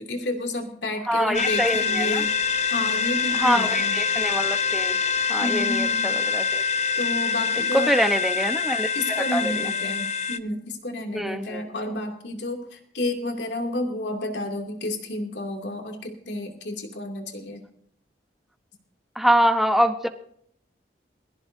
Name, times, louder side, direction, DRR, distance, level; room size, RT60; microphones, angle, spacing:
voice 1, 0.0-2.3 2.6-3.9 5.4-6.1 7.0-7.9 8.9-17.6, left 1 dB, 85° left, 2 dB, 2.6 m, -31 dB
voice 2, 1.1-2.2 3.3-5.0 5.3-6.6 7.7-9.7 11.1-11.6 19.2-20.1, equal, ahead, 7 dB, 0.9 m, -24 dB
sound 1, 1.3-10.4, left 6 dB, 40° left, 0.7 m, -25 dB
22.5 x 14.5 x 2.7 m, 0.67 s
head